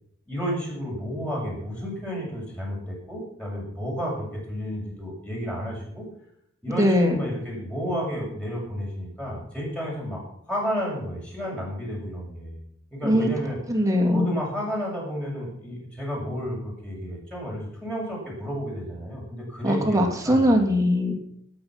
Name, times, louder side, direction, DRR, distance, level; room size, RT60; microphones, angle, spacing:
voice 1, 0.3-6.1 6.6-12.6 12.9-13.6 14.1-20.8, equal, 5° left, -4 dB, 6.8 m, -32 dB
voice 2, 6.8-7.1 13.0-13.3 13.7-14.2 19.6-21.2, equal, 15° right, 1 dB, 3.1 m, -20 dB
19.0 x 9.0 x 6.0 m, 0.69 s
head